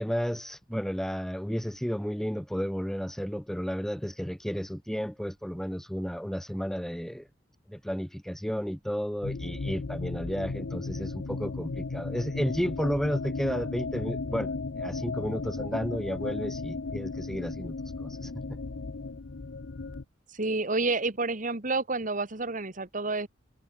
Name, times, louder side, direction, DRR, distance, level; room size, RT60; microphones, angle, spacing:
voice 1, 0.0-7.3 7.7-18.6, equal, ahead, 1.6 m, -32 dB
sound 1, 9.2-20.0, left 3 dB, 80° left, 0.7 m, -35 dB
voice 2, 20.3-23.3, right 3 dB, 45° right, 2.1 m, -29 dB
head